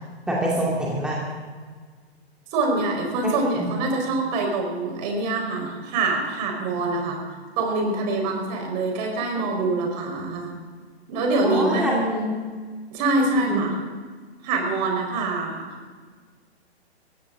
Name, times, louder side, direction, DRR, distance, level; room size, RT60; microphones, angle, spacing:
voice 1, 0.3-1.3 3.6-3.7 11.4-11.9 13.5-13.6, right 1 dB, ahead, -5 dB, 2.4 m, -25 dB
voice 2, 2.5-7.2 7.6-10.5 11.1-12.4 12.9-13.7 14.4-15.7, right 2 dB, 40° right, 2 dB, 4.8 m, -25 dB
21.5 x 16.0 x 3.8 m, 1.5 s
figure-of-eight pair, 125°, 33 cm